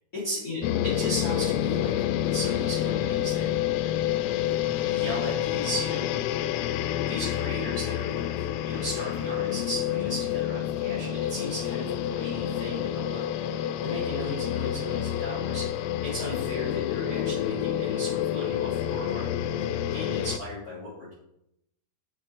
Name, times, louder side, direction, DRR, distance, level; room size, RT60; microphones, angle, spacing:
voice 1, 0.1-0.6 0.9-4.0 4.5-6.1 6.8-13.2 13.4-21.1, left 1 dB, 20° left, -11 dB, 3.5 m, -36 dB
sound 1, 0.6-20.4, left 11 dB, 90° left, 2.2 m, -28 dB
9.9 x 6.4 x 3.7 m, 0.81 s
omnidirectional pair, 5.1 m